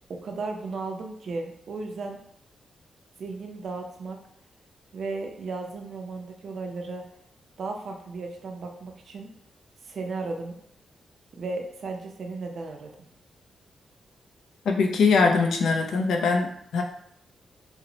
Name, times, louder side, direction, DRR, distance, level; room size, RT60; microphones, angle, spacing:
voice 1, 0.1-2.2 3.2-4.2 4.9-7.1 7.6-9.3 9.8-10.6 11.4-12.9, right 3 dB, 55° right, 3 dB, 0.4 m, -35 dB
voice 2, 14.7-16.8, left 4 dB, 85° left, 3 dB, 0.4 m, -22 dB
2.8 x 2.0 x 2.7 m, 0.71 s
wide cardioid pair, 145°, 0 cm